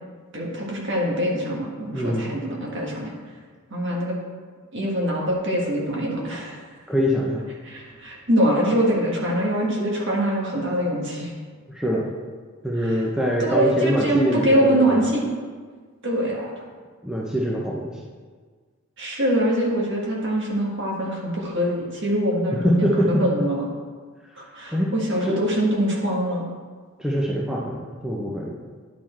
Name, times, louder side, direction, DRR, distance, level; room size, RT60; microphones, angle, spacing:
voice 1, 0.3-3.1 3.7-4.2 4.7-6.6 7.6-11.3 12.8-13.0 13.4-15.3 16.0-16.5 19.0-23.7 24.4-26.4, equal, 55° right, -3 dB, 1.7 m, -24 dB
voice 2, 1.9-2.3 6.9-7.4 11.7-12.1 12.6-15.1 17.0-17.9 22.5-23.2 24.7-24.9 25.2-25.3 27.0-28.5, equal, 5° right, -4 dB, 0.6 m, -24 dB
10.0 x 4.3 x 4.4 m, 1.5 s
head